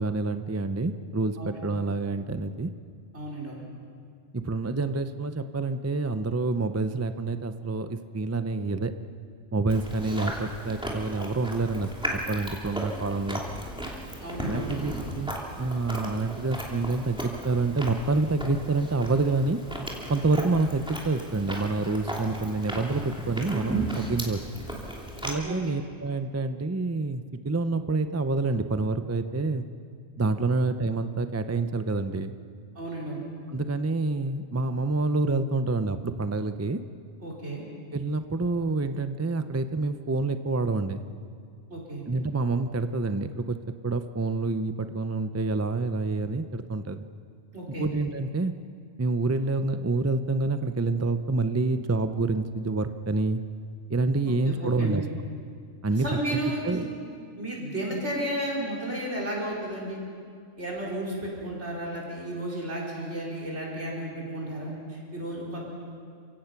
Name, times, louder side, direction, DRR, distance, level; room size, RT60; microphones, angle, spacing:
voice 1, 0.0-2.7 4.3-8.9 9.5-11.9 12.3-13.4 14.4-15.3 15.6-19.6 20.1-24.4 25.2-29.6 30.2-32.3 33.5-36.8 37.9-41.0 42.1-43.6 43.8-47.0 47.8-48.5 49.0-53.4 53.9-55.0 55.8-56.4 56.6-56.9, right 3 dB, 20° right, 10 dB, 0.4 m, -27 dB
voice 2, 3.1-3.6 14.2-14.7 25.4-25.6 32.7-33.3 37.2-37.6 41.7-42.0 47.5-47.9 54.2-55.0 56.0-56.8 57.4-60.0 60.6-65.6, right 1 dB, 60° right, -3 dB, 5.1 m, -33 dB
Chewing mastication, 9.7-25.3, right 1 dB, 5° right, 2.8 m, -36 dB
29.0 x 16.5 x 5.9 m, 2.2 s
omnidirectional pair, 1.3 m